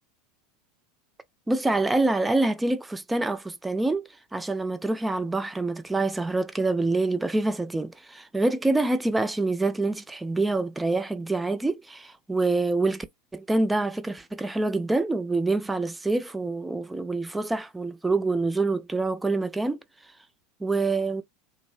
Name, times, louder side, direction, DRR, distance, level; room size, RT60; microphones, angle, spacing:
voice 1, 1.5-13.1 13.3-19.8 20.6-21.2, right 2 dB, 10° right, 0.4 m, -26 dB
2.5 x 2.0 x 2.4 m
hypercardioid pair, 90°, 0 cm